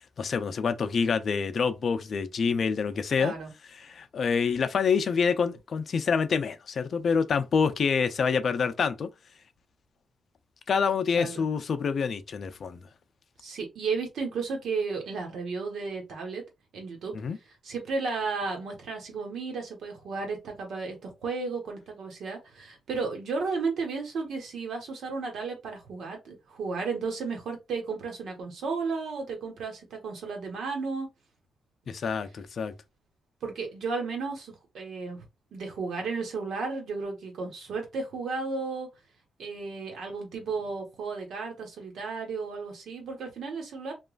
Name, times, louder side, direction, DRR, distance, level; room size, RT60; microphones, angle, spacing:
voice 1, 0.2-3.3 3.8-9.1 10.7-12.8 17.1-17.4 31.9-32.7, left 5 dB, 55° left, 0.4 m, -27 dB
voice 2, 3.2-3.5 11.2-11.4 13.4-16.4 16.7-17.1 17.6-31.1 33.4-35.3 35.5-38.9 39.4-43.9, right 4 dB, 75° right, 1.2 m, -33 dB
3.0 x 2.4 x 2.4 m
cardioid pair, 90°, 0 cm